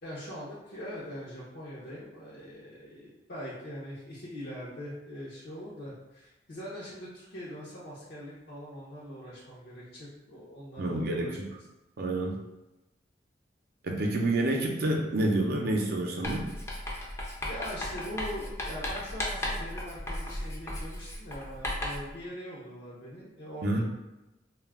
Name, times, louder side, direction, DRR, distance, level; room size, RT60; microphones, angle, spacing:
voice 1, 0.0-11.4 17.5-23.8, equal, 65° left, -7 dB, 0.6 m, -42 dB
voice 2, 10.8-11.5 12.0-12.4 13.8-16.5 23.6-23.8, right 1 dB, 60° right, 1 dB, 0.5 m, -28 dB
Writing, 16.2-22.1, left 1 dB, 15° left, 0.4 m, -35 dB
2.2 x 2.1 x 3.4 m, 1.0 s
head